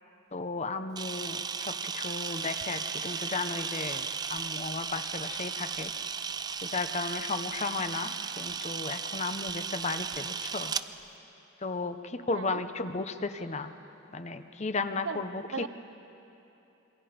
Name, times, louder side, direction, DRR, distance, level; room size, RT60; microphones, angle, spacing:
voice 1, 0.3-4.1 4.3-5.9 6.6-10.7 11.6-13.7 14.1-15.7, left 3 dB, 35° left, 10 dB, 0.8 m, -34 dB
Camera, 1.0-10.9, right 6 dB, 20° right, 0.4 m, -35 dB
voice 2, 12.3-12.6 15.0-15.2 15.5-15.7, right 5 dB, 80° right, 15 dB, 0.5 m, -36 dB
27.0 x 23.0 x 5.2 m, 2.9 s
head